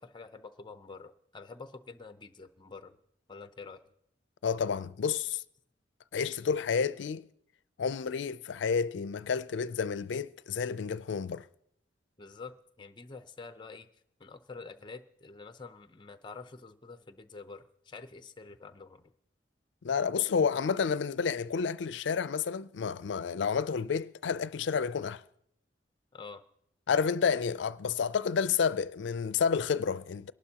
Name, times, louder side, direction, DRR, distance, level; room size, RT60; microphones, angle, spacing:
voice 1, 0.0-3.0 3.3-3.8 12.2-13.9 14.2-19.1 26.1-26.4, left 4 dB, 25° left, 0.6 m, -47 dB
voice 2, 4.4-5.4 6.1-7.3 7.8-11.5 19.8-25.2 26.9-30.3, left 6 dB, 80° left, 0.4 m, -30 dB
23.0 x 11.5 x 2.9 m
head